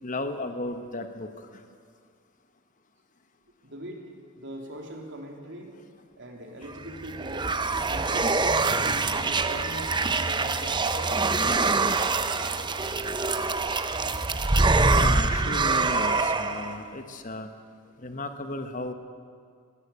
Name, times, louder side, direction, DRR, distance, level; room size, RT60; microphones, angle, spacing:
voice 1, 0.0-1.6 14.9-17.5 18.0-18.9, left 2 dB, 35° left, 7 dB, 1.3 m, -35 dB
voice 2, 3.6-5.8 6.2-8.3 8.9-11.2, right 1 dB, 55° right, 2 dB, 3.3 m, -41 dB
sound 1, 6.8-16.8, right 3 dB, 20° right, 0.8 m, -25 dB
21.0 x 17.0 x 8.5 m, 2.2 s
head